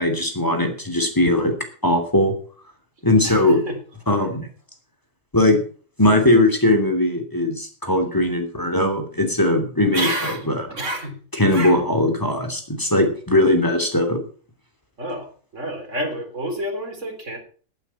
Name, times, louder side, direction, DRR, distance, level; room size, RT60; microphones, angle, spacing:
voice 1, 0.0-1.5 1.8-2.3 3.0-3.6 4.1-4.5 5.3-5.6 6.0-10.1 10.5-10.6 11.4-14.2, left 1 dB, 15° left, 5 dB, 2.9 m, -19 dB
voice 2, 3.2-3.8 9.9-11.2 11.5-11.8 15.0-17.4, right 1 dB, 65° right, 3 dB, 3.9 m, -29 dB
16.0 x 8.9 x 5.8 m, 0.43 s
omnidirectional pair, 1.4 m